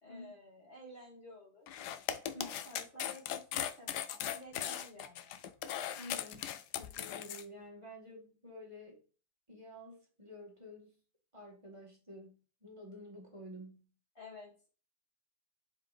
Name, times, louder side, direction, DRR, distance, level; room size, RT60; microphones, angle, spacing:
voice 1, 0.0-1.7 2.2-5.4 14.2-14.7, left 1 dB, 40° left, -2 dB, 2.9 m, -53 dB
sound 1, 1.7-7.4, left 10 dB, 75° left, 1.2 m, -38 dB
voice 2, 2.1-2.6 5.9-9.0 9.5-11.0 11.3-13.9, left 1 dB, 20° right, -1 dB, 1.9 m, -50 dB
7.9 x 5.0 x 2.5 m, 0.37 s
omnidirectional pair, 1.8 m